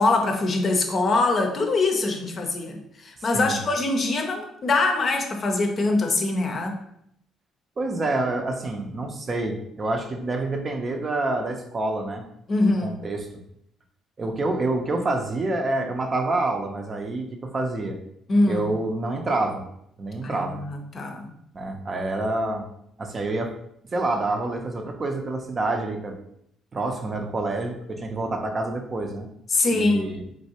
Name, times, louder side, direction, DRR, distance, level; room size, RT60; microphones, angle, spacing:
voice 1, 0.0-6.8 12.5-13.0 18.3-18.6 20.2-21.3 29.5-30.1, left 2 dB, 45° left, 3 dB, 0.6 m, -23 dB
voice 2, 7.8-12.2 12.8-13.3 14.2-18.0 18.5-19.7 20.0-20.6 21.5-22.7 23.0-23.6 23.9-26.2 26.7-29.3 29.7-30.2, right 2 dB, 40° right, 4 dB, 0.5 m, -27 dB
3.2 x 2.6 x 2.8 m, 0.74 s
hypercardioid pair, 50°, 0 cm